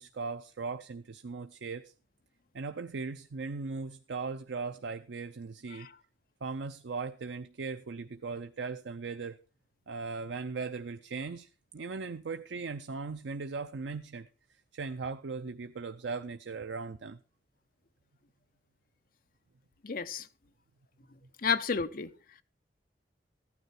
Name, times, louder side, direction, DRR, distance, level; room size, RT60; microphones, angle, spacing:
voice 1, 0.0-1.9 2.5-5.9 6.4-9.4 9.9-14.3 14.7-17.2, right 4 dB, 80° right, 0.5 m, -38 dB
voice 2, 19.8-20.3 21.4-22.1, left 5 dB, 50° left, 0.7 m, -31 dB
14.5 x 9.7 x 4.3 m
head